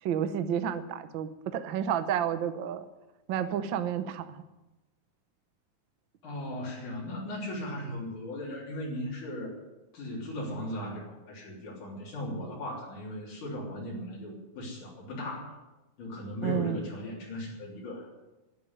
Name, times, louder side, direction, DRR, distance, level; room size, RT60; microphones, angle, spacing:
voice 1, 0.0-2.9 3.3-4.4 16.4-16.8, right 9 dB, 80° right, 10 dB, 1.0 m, -31 dB
voice 2, 6.2-9.6 9.9-15.6 16.0-18.1, left 1 dB, 90° left, -4 dB, 4.9 m, -37 dB
12.0 x 10.5 x 9.6 m, 1.0 s
omnidirectional pair, 3.4 m